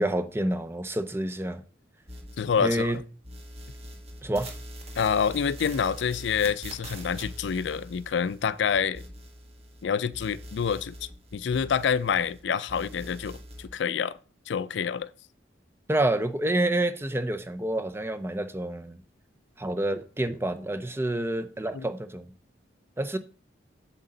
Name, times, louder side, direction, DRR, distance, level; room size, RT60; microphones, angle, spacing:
voice 1, 0.0-1.6 2.6-3.0 4.2-4.5 15.9-19.0 19.6-22.3 23.0-23.2, right 1 dB, 15° right, 0.6 m, -28 dB
sound 1, 2.1-3.0 3.2-9.8 10.1-12.4 12.7-13.7, equal, 35° right, 1.5 m, -43 dB
voice 2, 2.4-2.9 5.0-9.0 9.8-14.2 14.5-15.1 21.7-21.9, left 7 dB, 75° left, 0.4 m, -27 dB
8.0 x 7.5 x 3.9 m
head